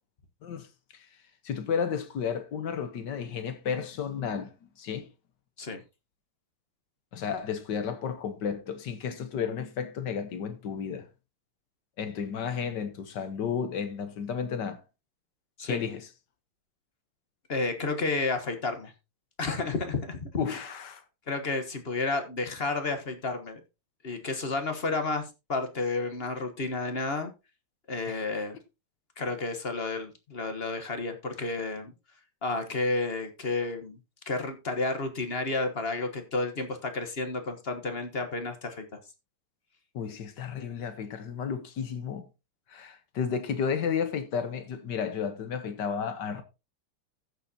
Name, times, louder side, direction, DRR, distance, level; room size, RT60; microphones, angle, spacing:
voice 1, 1.4-5.1 7.1-11.1 12.0-14.8 15.7-16.1 20.4-21.0 28.1-28.2 39.9-42.3 42.7-46.4, left 7 dB, 60° left, 1.5 m, -32 dB
voice 2, 17.5-18.9 19.4-20.6 21.3-23.6 24.0-25.2 25.5-27.3 27.9-28.6 29.2-31.9 32.4-34.0 34.3-38.8, left 3 dB, 35° left, 1.1 m, -31 dB
15.0 x 6.7 x 2.8 m
omnidirectional pair, 2.4 m